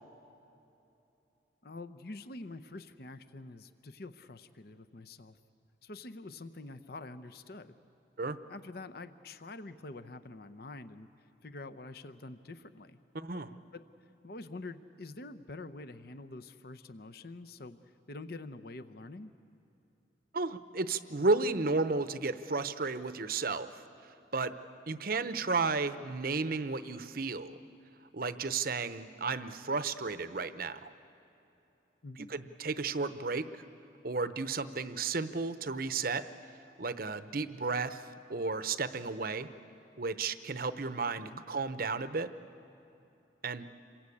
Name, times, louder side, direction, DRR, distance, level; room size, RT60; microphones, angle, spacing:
voice 1, 1.6-5.4 5.8-7.7 8.5-11.1 11.4-13.0 13.7-13.8 14.2-17.8 18.1-19.3 32.0-32.3 41.3-41.4, left 2 dB, 50° left, 11 dB, 0.8 m, -46 dB
voice 2, 13.1-13.5 20.3-23.8 24.3-24.5 24.9-27.6 28.1-30.9 32.2-33.6 34.0-36.2 36.8-38.0 38.3-39.5 40.0-42.3 43.4-43.7, right 3 dB, 50° right, 12 dB, 0.8 m, -33 dB
27.5 x 22.5 x 8.6 m, 2.9 s
head